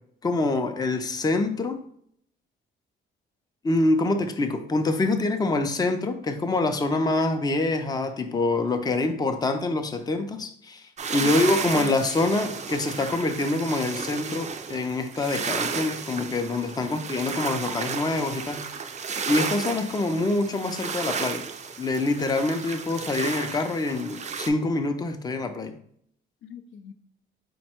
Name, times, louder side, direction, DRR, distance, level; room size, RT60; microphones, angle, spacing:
voice 1, 0.2-1.8 3.6-18.6 19.3-21.4 21.8-25.8, left 2 dB, 20° left, 7 dB, 0.5 m, -25 dB
sound 1, 11.0-24.5, right 6 dB, 35° right, 0.4 m, -33 dB
voice 2, 11.1-12.0 16.8-17.1 26.4-26.9, left 7 dB, 75° left, 9 dB, 0.5 m, -42 dB
4.3 x 2.2 x 4.3 m, 0.65 s
cardioid pair, 90°, 20 cm